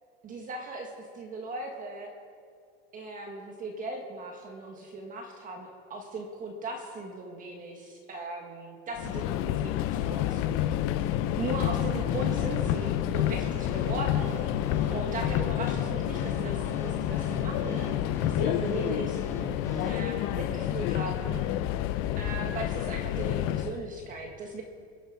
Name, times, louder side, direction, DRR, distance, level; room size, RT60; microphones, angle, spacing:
voice 1, 0.2-2.1 2.9-10.8 11.4-14.6 14.9-17.9 18.2-19.2 19.8-21.4 22.2-24.6, right 2 dB, 25° right, 2 dB, 1.5 m, -38 dB
Subway metro underground, 9.0-23.8, left 12 dB, 45° left, 0.6 m, -29 dB
sound 1, 12.1-19.9, equal, 10° left, 2.7 m, -41 dB
23.0 x 8.1 x 4.7 m, 2.2 s
supercardioid pair, 145°, 30 cm